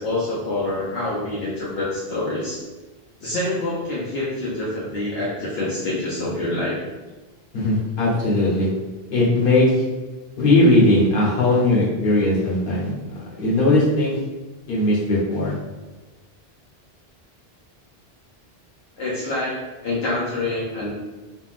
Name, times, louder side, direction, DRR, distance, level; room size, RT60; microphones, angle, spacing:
voice 1, 0.0-2.6 3.2-6.8 19.0-20.9, left 2 dB, 75° left, -7 dB, 0.9 m, -26 dB
voice 2, 7.5-8.7 9.1-9.8 10.4-14.2 14.7-15.5, left 2 dB, 60° left, -6 dB, 1.1 m, -19 dB
3.5 x 2.2 x 2.4 m, 1.2 s
omnidirectional pair, 1.0 m